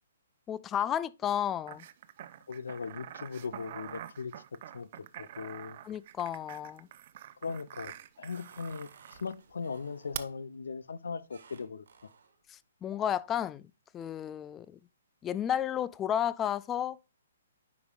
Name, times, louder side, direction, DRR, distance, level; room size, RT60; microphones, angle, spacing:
voice 1, 0.5-1.9 5.8-6.9 12.5-13.6 13.9-14.8 15.2-17.0, left 9 dB, 20° left, 0.3 m, -32 dB
sound 1, 1.7-9.3 10.1-10.2, right 12 dB, 45° right, 0.5 m, -46 dB
voice 2, 2.5-4.3 4.7-4.9 5.2-5.8 7.4-11.8, left 5 dB, 70° left, 0.5 m, -39 dB
sound 2, 5.9-6.5 7.0-7.4 7.8-10.4 11.3-12.4, right 5 dB, 65° right, 1.4 m, -59 dB
9.3 x 5.1 x 2.4 m
figure-of-eight pair, 130°, 0 cm